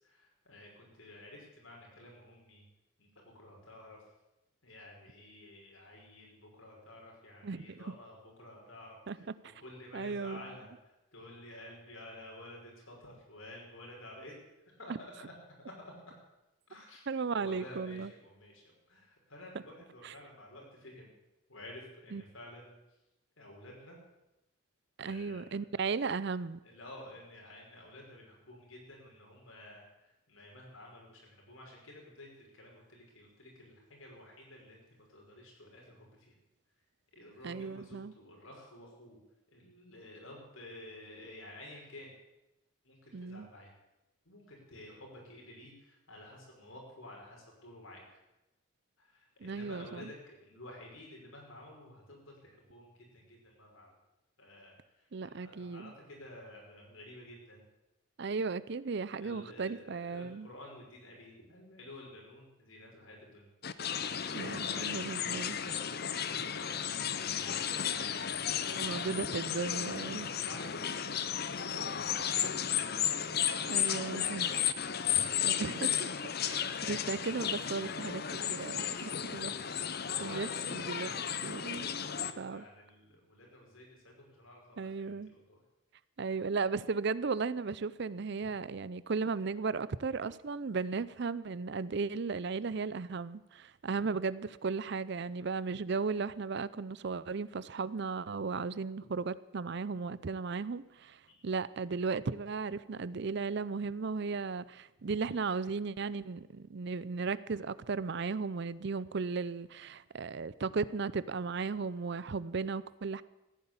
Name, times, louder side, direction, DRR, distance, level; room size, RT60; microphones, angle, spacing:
voice 1, 0.0-2.6 3.0-3.1 3.3-4.0 4.6-10.7 11.1-14.4 14.7-14.9 15.6-15.9 16.7-17.1 17.4-21.1 21.5-22.7 23.4-24.0 25.0-25.6 26.6-36.1 37.1-39.2 39.5-42.1 42.8-43.7 44.3-48.2 49.0-53.9 54.4-54.7 55.2-57.6 59.1-63.5 64.4-69.2 69.9-71.2 71.5-73.2 73.5-74.6 75.1-75.3 75.5-75.6 80.1-85.6 101.3-101.4, left 1 dB, 80° left, -1 dB, 5.6 m, -51 dB
voice 2, 7.4-8.0 9.1-9.2 9.9-10.5 14.9-15.0 17.1-18.1 20.0-20.1 22.1-22.2 25.0-26.6 37.4-38.1 43.1-43.5 49.4-50.1 55.1-55.9 58.2-60.5 64.3-65.6 68.7-70.3 73.7-74.5 75.4-76.1 76.4-79.6 80.2-81.1 81.4-81.9 82.4-82.7 84.8-85.3 86.2-113.2, right 4 dB, 55° right, 18 dB, 0.5 m, -36 dB
sound 1, 63.6-82.3, left 9 dB, 50° left, 0.7 m, -34 dB
15.0 x 9.7 x 8.7 m, 0.94 s
head